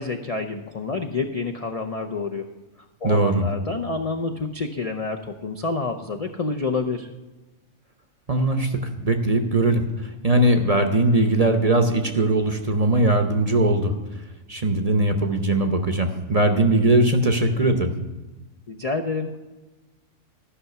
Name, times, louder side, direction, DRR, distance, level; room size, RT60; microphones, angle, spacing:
voice 1, 0.0-2.5 3.0-7.1 18.7-19.4, left 3 dB, 45° left, 3 dB, 0.5 m, -28 dB
voice 2, 3.0-3.5 8.3-13.9 14.5-17.9, right 2 dB, 35° right, 6 dB, 0.7 m, -20 dB
13.5 x 5.7 x 6.7 m, 1.2 s
omnidirectional pair, 1.4 m